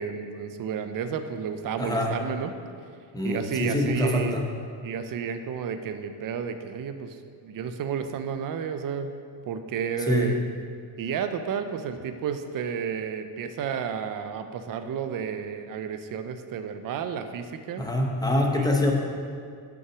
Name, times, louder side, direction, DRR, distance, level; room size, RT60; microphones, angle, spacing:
voice 1, 0.0-2.5 3.2-4.4 4.8-7.2 7.4-9.1 9.5-10.4 11.0-17.9 18.5-18.7, right 7 dB, 45° right, 8 dB, 0.6 m, -31 dB
voice 2, 1.8-2.1 3.1-4.4 10.1-10.3 17.8-18.9, left 1 dB, 10° left, 0 dB, 0.8 m, -24 dB
6.4 x 5.6 x 6.0 m, 2.3 s
cardioid pair, 140°, 49 cm